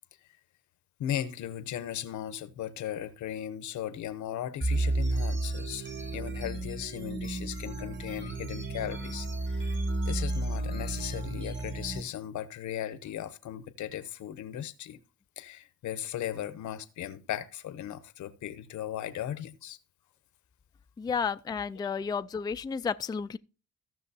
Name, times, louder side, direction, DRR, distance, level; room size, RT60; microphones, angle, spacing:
voice 1, 1.0-9.8 10.1-15.0 15.4-19.8, left 11 dB, 75° left, 0.8 m, -37 dB
sound 1, 4.6-12.0, right 2 dB, 40° right, 1.9 m, -32 dB
voice 2, 21.0-23.4, left 6 dB, 15° left, 0.3 m, -32 dB
16.0 x 6.2 x 2.7 m
cardioid pair, 90°, 30 cm